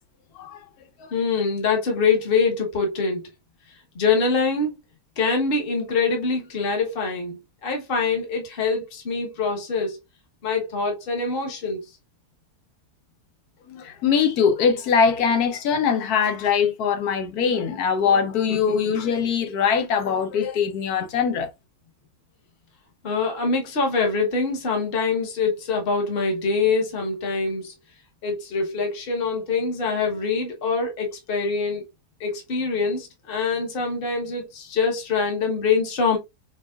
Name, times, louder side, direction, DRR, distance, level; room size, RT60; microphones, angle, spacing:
voice 1, 1.1-3.3 3.9-4.7 5.2-10.0 10.4-11.8 23.0-27.7 28.2-31.8 32.2-36.2, left 4 dB, 40° left, 1.2 m, -24 dB
voice 2, 13.7-21.5, left 6 dB, 90° left, 1.3 m, -22 dB
5.3 x 2.4 x 2.3 m
omnidirectional pair, 1.6 m